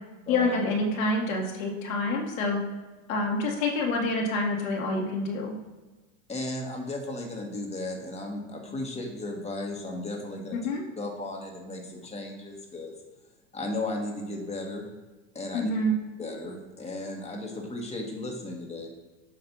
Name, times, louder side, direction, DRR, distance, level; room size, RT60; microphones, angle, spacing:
voice 1, 0.3-2.6 3.1-5.5 8.7-8.8 10.5-10.8 15.5-15.9, left 2 dB, 80° left, 0 dB, 1.3 m, -27 dB
voice 2, 6.3-10.6 11.0-12.9 13.5-14.9 15.3-15.7 16.2-18.9, left 2 dB, 15° left, 1 dB, 1.3 m, -35 dB
7.8 x 2.6 x 5.4 m, 1.2 s
hypercardioid pair, 115°, 40 cm